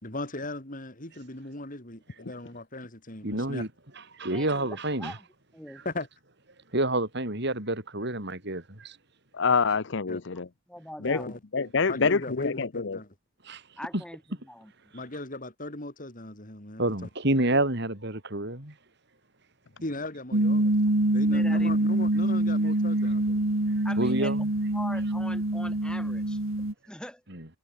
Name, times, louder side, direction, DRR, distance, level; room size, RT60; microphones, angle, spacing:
voice 1, 0.0-3.7 5.8-6.1 10.1-10.2 11.0-11.4 11.9-13.1 14.9-17.1 19.8-20.7 21.1-23.4, left 2 dB, 40° left, 4.6 m, -38 dB
voice 2, 3.2-3.7 4.1-5.2 5.7-5.8 6.7-9.0 13.4-13.6 16.8-18.7 24.0-24.5 27.3-27.5, right 1 dB, 55° right, 6.5 m, -28 dB
voice 3, 4.3-5.3 5.5-5.8 10.3-10.4 10.7-11.4 13.8-14.2 14.5-14.7 21.0-21.7 23.8-24.3 24.7-27.2, left 1 dB, 5° left, 7.0 m, -42 dB
voice 4, 9.3-10.5 11.0-11.2 11.5-13.0, left 5 dB, 60° left, 0.8 m, -26 dB
sound 1, 20.3-26.7, right 1 dB, 85° right, 2.2 m, -25 dB
head